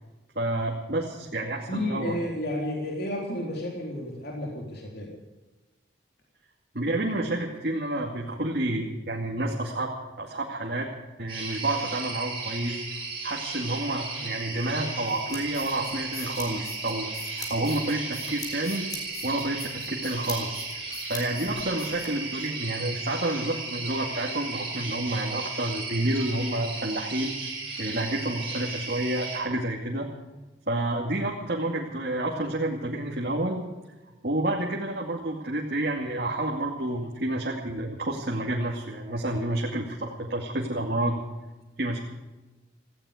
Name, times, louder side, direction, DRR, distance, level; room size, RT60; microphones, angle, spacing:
voice 1, 0.3-2.1 6.7-9.9 10.2-10.9 11.2-17.1 17.4-18.9 19.2-20.6 21.1-27.3 27.8-30.1 30.7-33.6 34.2-41.2 41.8-42.0, right 1 dB, 55° right, -2 dB, 2.3 m, -29 dB
voice 2, 1.7-5.1, left 1 dB, 55° left, -2 dB, 3.7 m, -31 dB
sound 1, 11.3-29.4, right 3 dB, 25° right, 5.5 m, -35 dB
sound 2, 15.1-22.5, left 2 dB, 20° left, 4.2 m, -42 dB
18.0 x 16.0 x 5.1 m, 1.1 s
head